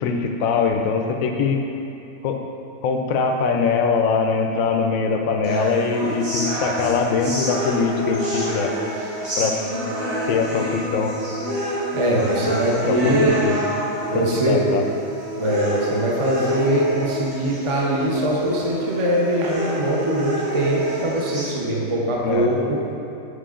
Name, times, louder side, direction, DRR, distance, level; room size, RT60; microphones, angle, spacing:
voice 1, 0.0-1.6 2.2-2.4 2.8-8.7 9.4-9.6 10.3-11.1 12.8-13.6 14.1-14.8 22.2-22.5, left 5 dB, 80° left, 3 dB, 1.0 m, -22 dB
sound 1, 5.4-21.5, equal, 75° right, 2.2 m, -28 dB
voice 2, 11.9-13.4 14.1-14.7 15.4-22.8, right 1 dB, 30° right, -3 dB, 0.6 m, -22 dB
6.7 x 5.2 x 3.7 m, 2.9 s
omnidirectional pair, 1.4 m